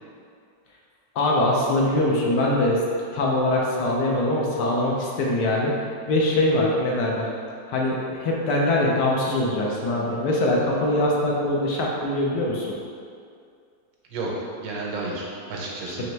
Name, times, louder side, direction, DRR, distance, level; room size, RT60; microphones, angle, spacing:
voice 1, 1.2-2.8 3.1-5.8 6.1-7.3 7.7-12.7, left 1 dB, 75° left, -2 dB, 1.2 m, -22 dB
voice 2, 14.1-16.1, right 2 dB, 85° right, -3 dB, 1.4 m, -31 dB
4.3 x 3.0 x 3.2 m, 2.3 s
omnidirectional pair, 2.0 m